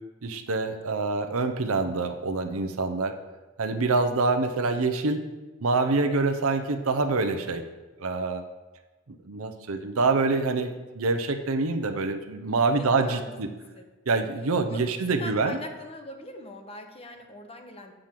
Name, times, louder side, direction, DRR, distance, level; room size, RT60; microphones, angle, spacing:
voice 1, 0.2-3.1 3.6-5.2 5.6-7.6 8.0-8.4 9.2-13.5 14.1-15.6, right 3 dB, 85° right, 6 dB, 0.7 m, -26 dB
voice 2, 12.5-13.9 14.7-17.9, left 1 dB, 30° left, 5 dB, 0.9 m, -42 dB
7.6 x 5.0 x 7.4 m, 1.2 s
head